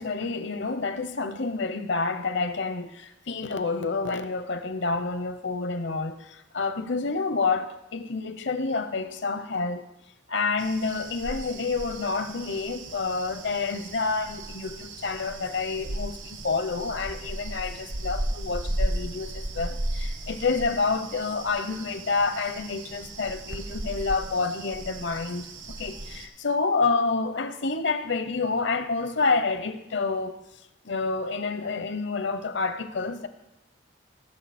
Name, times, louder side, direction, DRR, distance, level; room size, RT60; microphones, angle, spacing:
voice 1, 0.0-9.8 10.3-30.4 30.8-33.3, left 4 dB, 65° left, 0.8 m, -28 dB
sound 1, 10.6-26.3, right 1 dB, 65° right, 1.2 m, -35 dB
19.0 x 6.6 x 4.3 m
head